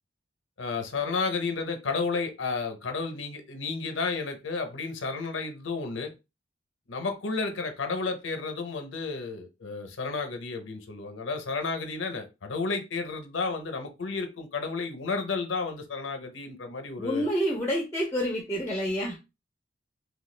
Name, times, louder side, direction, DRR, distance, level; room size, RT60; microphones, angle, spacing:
voice 1, 0.6-6.1 6.9-17.2, left 4 dB, 85° left, 0.7 m, -32 dB
voice 2, 17.0-19.2, equal, 15° left, 0.6 m, -28 dB
3.0 x 2.3 x 3.2 m
head